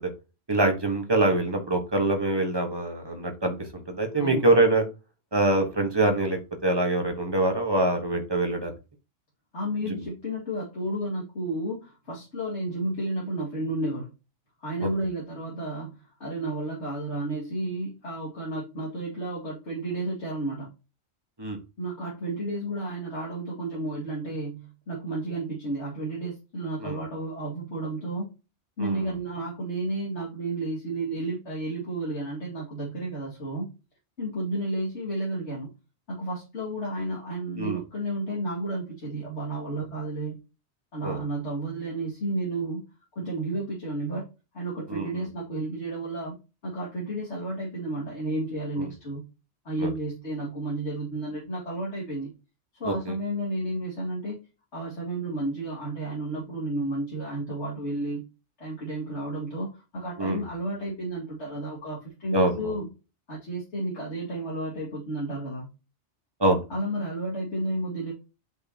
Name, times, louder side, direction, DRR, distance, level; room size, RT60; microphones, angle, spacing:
voice 1, 0.5-3.5 3.9-4.8 5.3-8.7 21.4-21.6 26.8-27.0 28.8-29.0 37.6-37.8 41.0-41.2 44.9-45.1 49.8-49.9 52.8-52.9 60.2-60.4 62.3-62.7 66.4-66.6, right 2 dB, 20° right, 4 dB, 1.3 m, -24 dB
voice 2, 9.5-14.1 14.6-20.7 21.8-28.3 28.8-33.7 34.2-35.7 36.1-40.4 40.9-42.8 43.2-44.2 44.5-46.4 46.6-49.2 49.6-52.3 52.7-54.4 54.7-58.2 58.6-62.9 63.3-65.7 66.7-68.1, right 1 dB, 70° left, -5 dB, 2.5 m, -32 dB
7.7 x 5.5 x 2.9 m, 0.29 s
omnidirectional pair, 1.2 m